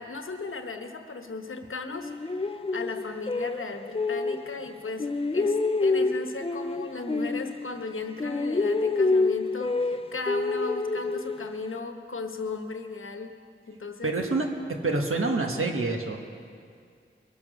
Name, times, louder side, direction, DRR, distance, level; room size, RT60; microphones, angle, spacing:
voice 1, 0.0-2.1 2.4-13.4 13.7-14.2, left 4 dB, 75° left, 6 dB, 1.0 m, -36 dB
sound 1, 1.9-4.7 5.0-11.7, left 3 dB, 25° left, 0.5 m, -27 dB
voice 2, 14.0-16.2, right 3 dB, 85° right, 3 dB, 1.3 m, -27 dB
21.0 x 7.2 x 6.2 m, 2.3 s
wide cardioid pair, 45°, 21 cm